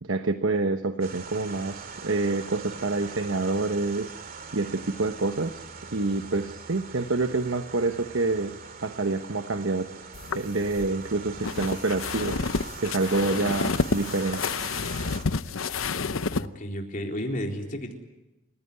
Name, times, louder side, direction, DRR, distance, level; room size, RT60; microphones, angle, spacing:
voice 1, 0.0-4.1 4.5-5.6 5.9-8.5 8.8-9.9 10.3-12.4 12.8-14.4, right 3 dB, 75° right, 8 dB, 1.1 m, -27 dB
sound 1, 1.0-15.2, right 5 dB, 45° right, 2.6 m, -42 dB
sound 2, 10.1-16.5, left 4 dB, 90° left, 0.8 m, -30 dB
voice 2, 16.3-17.9, equal, 40° left, 1 dB, 4.0 m, -32 dB
29.0 x 16.0 x 9.8 m, 1.0 s
head